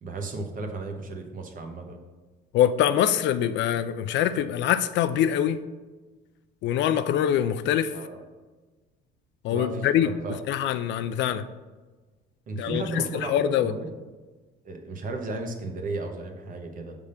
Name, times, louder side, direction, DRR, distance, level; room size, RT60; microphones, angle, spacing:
voice 1, 0.0-2.0 7.9-8.2 9.5-10.4 11.3-11.4 12.5-13.9 14.6-17.0, right 3 dB, 40° right, 4 dB, 1.0 m, -34 dB
voice 2, 2.5-5.6 6.6-7.9 9.4-10.1 10.5-11.4 12.6-13.7, left 10 dB, 65° left, 11 dB, 0.4 m, -24 dB
6.5 x 3.5 x 5.5 m, 1.3 s
cardioid pair, 130°, 21 cm